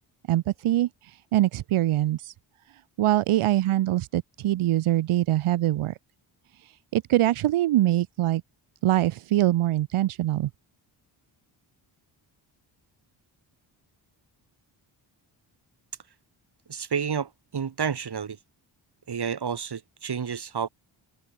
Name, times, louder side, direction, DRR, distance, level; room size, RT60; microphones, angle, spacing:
voice 1, 0.3-2.3 3.0-6.0 6.6-8.4 8.8-10.5, right 14 dB, 80° right, 1.4 m, -23 dB
voice 2, 16.7-18.4 19.1-20.7, right 7 dB, 50° right, 3.2 m, -30 dB
supercardioid pair, 50°, 49 cm